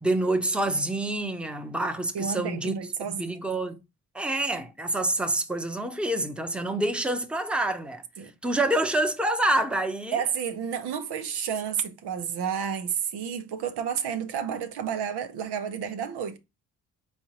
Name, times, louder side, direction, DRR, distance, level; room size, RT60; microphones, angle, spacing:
voice 1, 0.0-2.7 3.1-3.8 4.1-8.0 8.4-10.2, right 1 dB, 5° right, 0.8 m, -27 dB
voice 2, 2.1-3.4 8.2-8.3 10.1-16.4, right 8 dB, 85° right, 1.0 m, -31 dB
4.4 x 4.1 x 2.9 m
cardioid pair, 75°, 39 cm